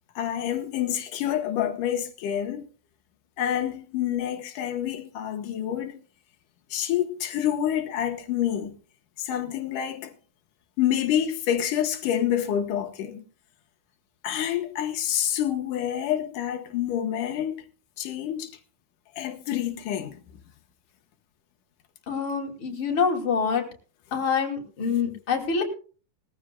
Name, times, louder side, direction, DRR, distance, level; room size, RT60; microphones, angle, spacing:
voice 1, 0.2-2.7 3.4-6.0 6.7-8.7 9.2-10.1 10.8-13.2 14.2-17.7 18.0-18.5 19.2-20.2, left 10 dB, 90° left, 2.8 m, -27 dB
voice 2, 22.1-23.6 24.1-25.6, left 6 dB, 45° left, 3.5 m, -26 dB
20.5 x 14.5 x 2.3 m
omnidirectional pair, 3.6 m